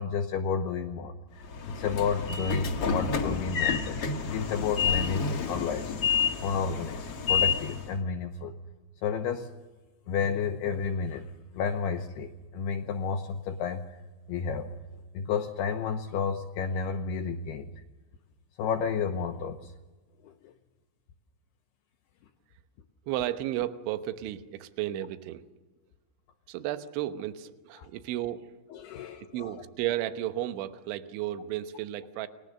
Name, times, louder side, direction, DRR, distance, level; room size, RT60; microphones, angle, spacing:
voice 1, 0.0-4.0 4.2-5.9 6.4-8.5 9.0-9.5 10.1-14.0 14.3-14.7 15.1-17.7 18.6-19.7 20.2-20.5 27.8-27.9 28.7-29.6, left 6 dB, 85° left, 5 dB, 2.3 m, -31 dB
Train / Sliding door, 1.4-7.9, left 6 dB, 55° left, 1.6 m, -29 dB
voice 2, 23.1-25.4 26.5-28.5 29.3-32.3, right 13 dB, 75° right, 9 dB, 3.2 m, -33 dB
29.5 x 22.0 x 6.6 m, 1.2 s
omnidirectional pair, 6.0 m